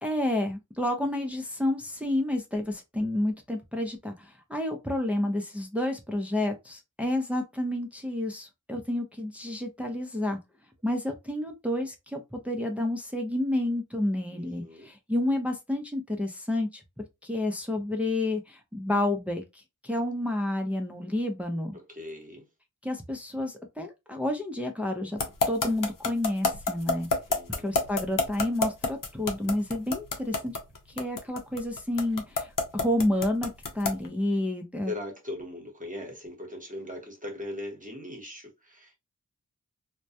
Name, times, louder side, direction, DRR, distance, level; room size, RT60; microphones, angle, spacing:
voice 1, 0.0-10.4 10.8-16.8 17.2-21.8 22.8-25.2 25.5-27.1 27.6-30.6 30.9-34.9, left 1 dB, 5° right, 0.5 m, -30 dB
voice 2, 14.3-14.9 21.7-22.5 27.3-27.9 34.9-39.0, left 1 dB, 25° right, 1.0 m, -40 dB
sound 1, 25.2-34.1, left 3 dB, 80° left, 0.7 m, -27 dB
2.2 x 2.1 x 2.7 m
wide cardioid pair, 55°, 32 cm